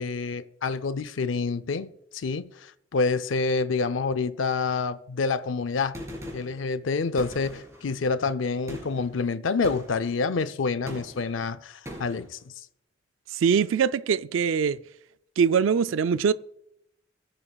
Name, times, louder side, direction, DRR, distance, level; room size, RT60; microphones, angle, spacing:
voice 1, 0.0-6.0 6.3-12.4, left 4 dB, 80° left, 0.5 m, -27 dB
Gunshot gunfire, 5.9-6.6 7.2-7.9 8.7-9.1 9.6-10.1 10.9-11.4 11.9-12.3, equal, 15° right, 3.7 m, -40 dB
voice 2, 13.3-14.8 15.4-16.3, right 6 dB, 90° right, 0.4 m, -22 dB
22.5 x 8.8 x 2.3 m
head